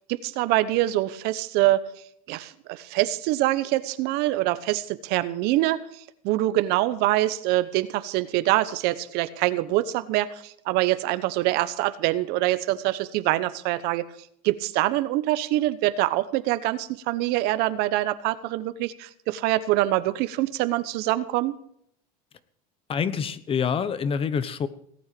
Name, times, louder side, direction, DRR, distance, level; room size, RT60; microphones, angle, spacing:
voice 1, 0.1-1.8 2.3-5.8 6.2-14.0 14.4-21.5, right 16 dB, 65° right, 14 dB, 1.0 m, -24 dB
voice 2, 22.9-24.7, left 6 dB, 30° left, 15 dB, 1.2 m, -26 dB
18.0 x 8.9 x 6.8 m, 0.68 s
supercardioid pair, 120°, 18 cm